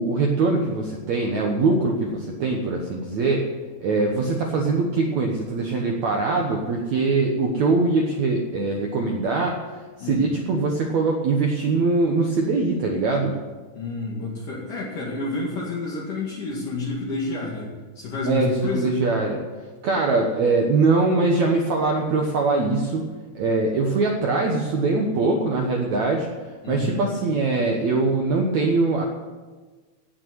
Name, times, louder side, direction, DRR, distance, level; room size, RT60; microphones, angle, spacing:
voice 1, 0.0-3.4 3.8-13.4 18.2-19.4 19.8-23.0 23.3-26.3 26.7-29.0, right 3 dB, 90° right, 1 dB, 1.6 m, -22 dB
voice 2, 3.9-4.2 10.0-10.3 13.7-18.9 26.6-27.0, left 3 dB, 55° left, -4 dB, 3.3 m, -30 dB
17.0 x 6.3 x 9.4 m, 1.4 s
omnidirectional pair, 5.2 m